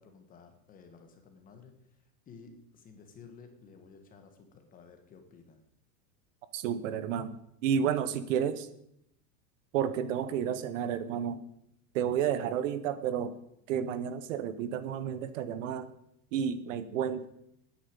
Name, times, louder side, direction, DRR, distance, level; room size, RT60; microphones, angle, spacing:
voice 1, 0.0-5.6, left 5 dB, 15° left, 6 dB, 1.4 m, -54 dB
voice 2, 6.5-7.4 7.6-8.7 9.7-11.4 11.9-13.3 13.7-15.9 16.3-17.2, right 8 dB, 50° right, 13 dB, 1.1 m, -31 dB
10.0 x 9.6 x 8.8 m, 0.76 s
supercardioid pair, 175°, 47 cm